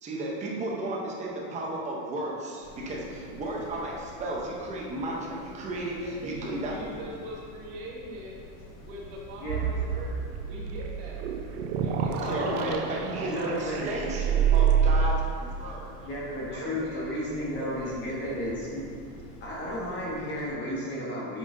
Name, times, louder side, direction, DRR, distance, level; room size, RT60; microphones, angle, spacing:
voice 1, 0.0-6.8 12.2-16.1, right 1 dB, 15° right, -3 dB, 0.7 m, -34 dB
sound 1, 2.6-20.5, left 1 dB, 50° left, 1.5 m, -48 dB
voice 2, 5.7-8.5 8.8-11.2 11.8-12.5 13.3-14.2 15.7-15.8 16.5-18.5, right 1 dB, 55° right, -4 dB, 1.6 m, -42 dB
sound 2, 9.5-15.1, right 7 dB, 80° right, 0.7 m, -27 dB
voice 3, 12.2-12.8 13.2-13.9 16.0-18.8 19.4-21.4, equal, 25° left, -5 dB, 1.2 m, -33 dB
8.7 x 5.7 x 2.7 m, 2.3 s
supercardioid pair, 165°, 44 cm